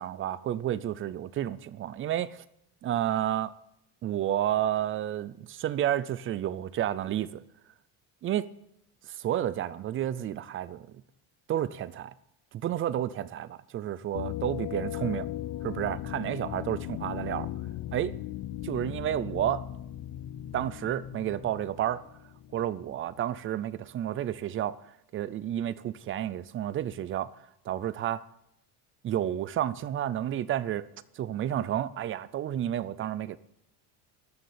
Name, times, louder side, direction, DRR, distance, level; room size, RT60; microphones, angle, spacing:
voice 1, 0.0-2.4 2.8-3.5 4.0-7.4 8.2-8.5 9.0-10.9 11.5-12.1 12.5-15.3 15.6-17.5 17.9-18.2 18.6-19.6 20.5-22.0 22.5-24.8 25.1-27.3 27.7-28.2 29.0-30.9 31.2-33.4, right 11 dB, 30° right, 0.4 m, -31 dB
sound 1, 14.1-22.8, left 13 dB, 40° left, 0.6 m, -38 dB
13.5 x 6.7 x 9.3 m
cardioid pair, 145°, 46 cm